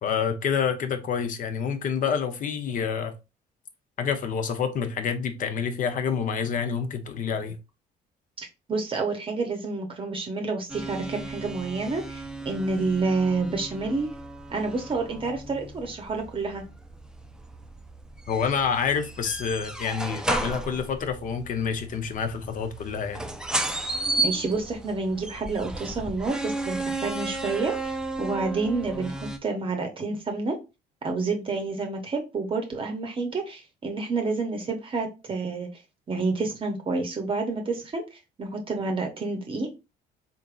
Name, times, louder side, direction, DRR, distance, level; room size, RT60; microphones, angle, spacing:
voice 1, 0.0-3.1 4.0-7.6 18.3-23.2, left 6 dB, 50° left, 0.8 m, -28 dB
voice 2, 8.4-14.1 14.5-16.6 24.2-30.6 31.0-35.7 36.1-39.7, right 3 dB, 30° right, 0.8 m, -29 dB
sound 1, 10.7-29.4, right 2 dB, 5° right, 0.5 m, -34 dB
3.9 x 3.4 x 2.4 m
cardioid pair, 110°, 17 cm